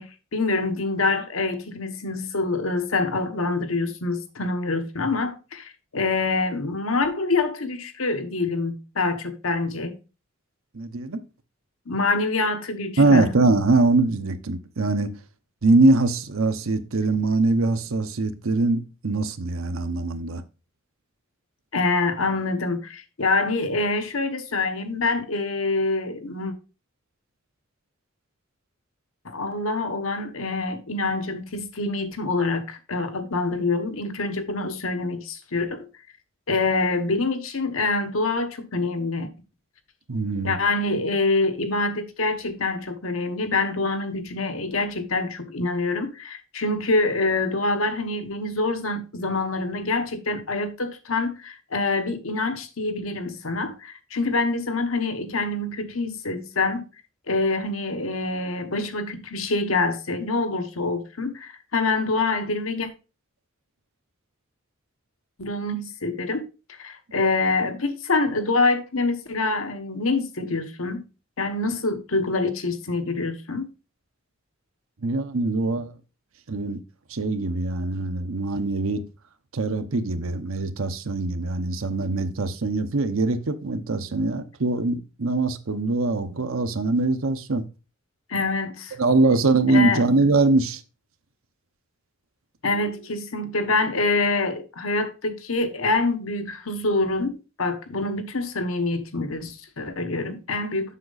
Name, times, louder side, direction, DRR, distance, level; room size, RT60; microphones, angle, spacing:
voice 1, 0.0-10.0 11.9-13.3 21.7-26.5 29.2-35.9 36.5-39.3 40.4-56.9 57.3-62.9 65.4-66.5 66.8-71.0 71.4-73.7 88.3-89.0 89.7-90.0 92.6-100.9, left 3 dB, 90° left, 1.3 m, -26 dB
voice 2, 10.7-11.2 13.0-15.1 15.6-20.4 40.1-40.6 75.0-75.9 76.5-76.8 77.1-79.1 79.5-87.6 89.0-90.8 92.7-92.9, right 3 dB, 90° right, 0.9 m, -22 dB
7.4 x 6.4 x 4.0 m
head